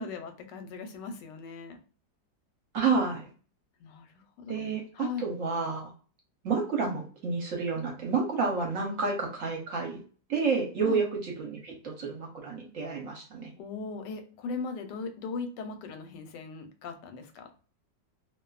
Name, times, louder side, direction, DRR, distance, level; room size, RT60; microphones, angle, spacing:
voice 1, 0.0-1.8 3.8-4.1 4.4-4.6 4.9-5.3 8.9-9.1 10.8-11.0 13.6-17.5, left 4 dB, 90° left, 6 dB, 1.2 m, -38 dB
voice 2, 2.7-3.3 4.5-4.8 5.2-5.9 6.4-10.0 10.3-13.5, right 4 dB, 60° right, 0 dB, 0.9 m, -30 dB
2.6 x 2.4 x 2.3 m, 0.39 s
omnidirectional pair, 1.8 m